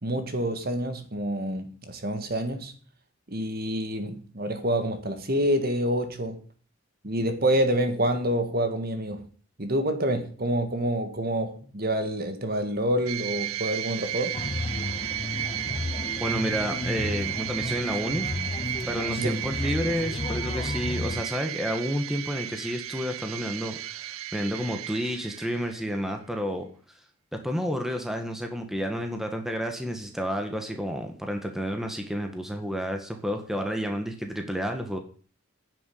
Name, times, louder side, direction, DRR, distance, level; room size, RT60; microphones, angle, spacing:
voice 1, 0.0-2.7 3.3-6.4 7.0-9.3 9.6-14.4 19.2-19.3, right 1 dB, 45° right, 1.7 m, -27 dB
sound 1, 13.1-25.9, right 12 dB, 80° right, 0.7 m, -34 dB
sound 2, 14.3-21.2, left 2 dB, 25° left, 0.5 m, -33 dB
voice 2, 16.1-18.3 18.8-26.7 27.3-35.0, equal, ahead, 1.7 m, -30 dB
10.0 x 7.4 x 9.3 m
head